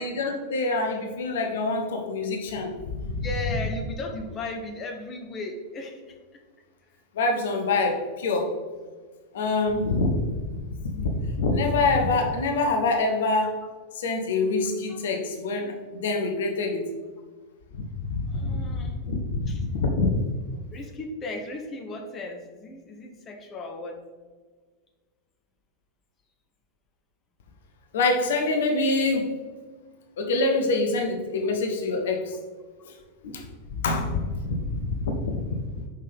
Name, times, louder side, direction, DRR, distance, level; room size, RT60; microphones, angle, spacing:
voice 1, 0.0-3.3 7.1-8.5 9.3-13.6 13.9-16.8 17.7-20.2 27.9-29.3 30.2-32.4 32.8-32.9 33.2-35.2, left 3 dB, 60° left, 3 dB, 0.8 m, -26 dB
voice 2, 3.2-6.1 14.9-15.0 18.3-18.9 19.5-19.6 20.7-24.0, left 2 dB, 25° left, 2 dB, 0.8 m, -36 dB
5.7 x 5.4 x 3.4 m, 1.5 s
figure-of-eight pair, 90°, 0 cm